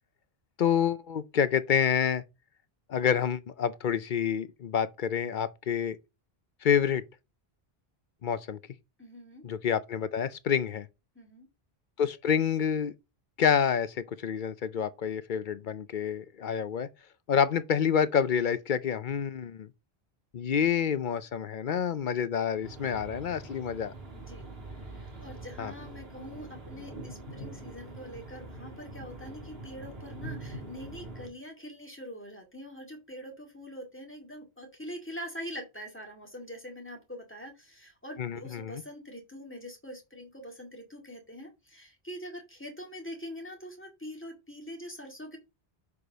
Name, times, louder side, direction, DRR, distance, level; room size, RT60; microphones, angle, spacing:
voice 1, 0.6-2.2 2.9-6.0 6.6-7.0 8.2-8.6 9.4-10.9 12.0-12.9 13.4-16.9 17.3-19.7 20.3-23.9 25.6-25.7 38.2-38.8, left 7 dB, 55° left, 0.7 m, -28 dB
voice 2, 9.0-9.4 11.2-11.5 24.1-45.4, equal, 10° left, 2.0 m, -44 dB
sound 1, 22.6-31.3, right 2 dB, 70° right, 2.3 m, -44 dB
6.7 x 5.0 x 4.0 m
omnidirectional pair, 1.0 m